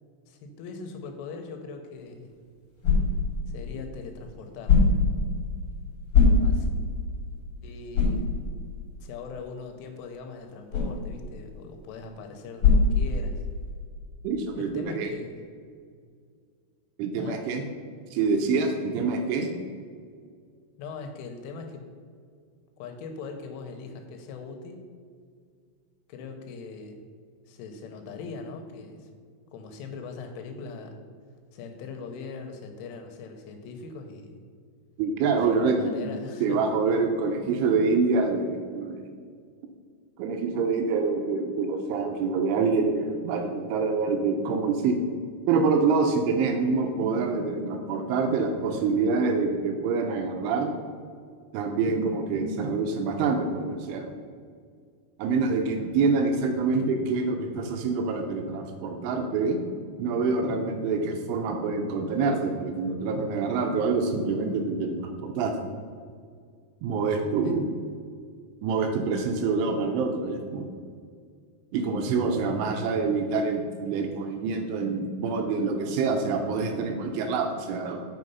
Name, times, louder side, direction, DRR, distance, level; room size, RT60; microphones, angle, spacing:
voice 1, 0.3-2.3 3.5-4.9 6.4-6.7 7.6-8.3 9.0-13.4 14.5-15.4 17.2-17.4 20.8-21.8 22.8-24.9 26.1-27.0 27.5-29.1 29.5-31.0 31.5-34.4 35.3-36.6 60.5-60.8 67.4-67.6, left 4 dB, 80° left, 5 dB, 3.1 m, -40 dB
sound 1, 1.9-13.7, left 4 dB, 40° left, 2.2 m, -26 dB
voice 2, 14.2-15.1 17.0-17.6 18.1-19.5 35.0-36.1 36.4-39.0 40.2-45.0 45.5-50.7 51.5-54.1 55.2-59.6 60.0-65.5 66.8-67.7 68.6-70.7 71.7-78.1, right 4 dB, 80° right, 4 dB, 2.9 m, -26 dB
7.6 x 5.7 x 5.4 m, 2.1 s
omnidirectional pair, 5.9 m